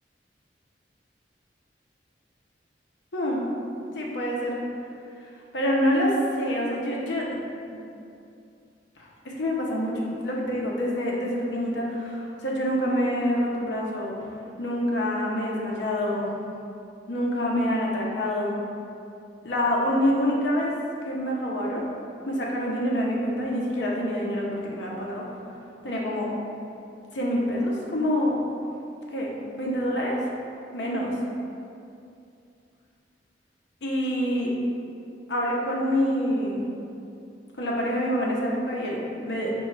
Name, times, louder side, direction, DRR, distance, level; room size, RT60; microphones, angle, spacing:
voice 1, 3.1-3.5 3.9-4.6 5.5-7.3 7.7-7.8 9.2-14.1 14.6-16.3 17.1-18.6 19.4-20.8 21.1-21.9 22.3-25.3 25.8-26.3 27.1-28.4 29.1-30.2 30.7-31.1 33.8-34.5 35.3-36.7 37.6-39.5, equal, 75° left, -3 dB, 0.7 m, -26 dB
5.1 x 2.3 x 3.2 m, 2.6 s
head